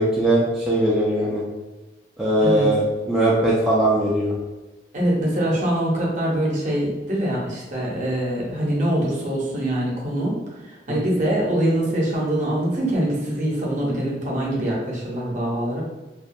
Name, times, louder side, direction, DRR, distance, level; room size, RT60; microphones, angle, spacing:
voice 1, 0.0-1.4 2.2-4.3, right 1 dB, 5° right, -7 dB, 0.3 m, -20 dB
voice 2, 4.9-10.4 10.9-15.8, right 1 dB, 45° right, -4 dB, 0.6 m, -23 dB
2.3 x 2.1 x 2.6 m, 1.1 s
head